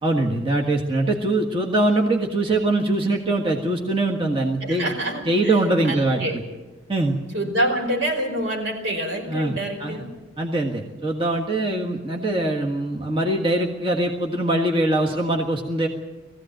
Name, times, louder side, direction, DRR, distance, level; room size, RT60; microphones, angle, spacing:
voice 1, 0.0-4.9 5.2-6.2 6.9-7.1 9.3-10.0 10.4-15.9, right 2 dB, 25° right, 0 dB, 1.6 m, -22 dB
voice 2, 4.6-5.6 5.8-6.4 7.3-10.1, right 1 dB, 75° right, 1 dB, 5.3 m, -26 dB
20.0 x 15.5 x 9.0 m, 1.1 s
head